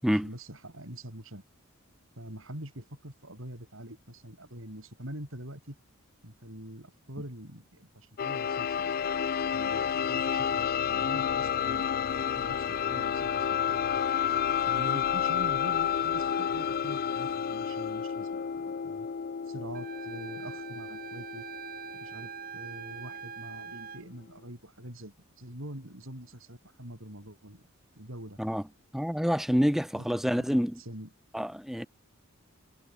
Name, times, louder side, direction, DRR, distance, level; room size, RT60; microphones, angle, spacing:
voice 1, 0.1-1.4 2.2-5.8 6.2-13.8 14.7-19.1 19.5-21.5 21.9-27.7 28.0-28.4 29.6-31.1, right 1 dB, 65° right, 7.8 m, -45 dB
sound 1, 8.2-23.8, left 8 dB, 45° left, 0.4 m, -30 dB
Wind instrument woodwind instrument, 19.7-24.0, right 7 dB, 45° right, 6.5 m, -43 dB
voice 2, 28.9-30.8 31.3-31.9, equal, ahead, 1.1 m, -27 dB
head